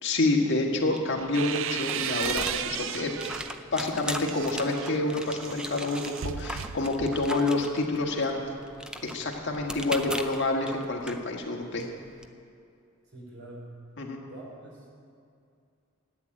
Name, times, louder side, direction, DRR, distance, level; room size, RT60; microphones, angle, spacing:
voice 1, 0.0-3.1 3.7-8.4 9.0-11.9 14.0-14.2, left 2 dB, 60° left, 0 dB, 1.8 m, -28 dB
sound 1, 0.5-12.3, equal, 5° right, 0.6 m, -40 dB
sound 2, 0.9-3.6 4.1-7.4, right 10 dB, 65° right, 0.4 m, -35 dB
voice 2, 13.1-13.7 14.2-14.8, right 1 dB, 80° right, -2 dB, 4.3 m, -45 dB
12.0 x 8.6 x 9.6 m, 2.5 s
head